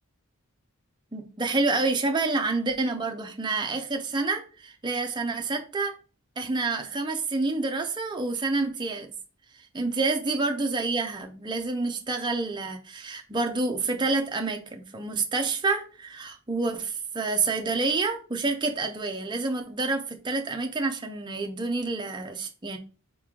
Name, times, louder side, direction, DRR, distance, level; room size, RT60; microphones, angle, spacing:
voice 1, 1.1-6.0 6.4-9.1 9.7-22.8, right 3 dB, 20° right, 0.5 m, -28 dB
4.2 x 3.0 x 3.7 m
head